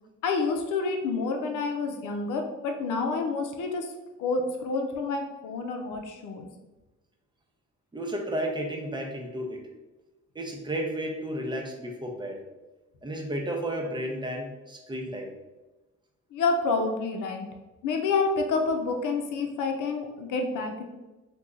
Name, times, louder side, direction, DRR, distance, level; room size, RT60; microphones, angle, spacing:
voice 1, 0.2-3.9 4.2-6.5 16.3-17.5 17.8-20.8, left 4 dB, 80° left, 4 dB, 0.6 m, -28 dB
voice 2, 7.9-9.6 10.3-12.4 13.0-15.3, right 1 dB, 15° right, 1 dB, 0.6 m, -32 dB
2.9 x 2.3 x 3.7 m, 1.1 s
cardioid pair, 80°, 31 cm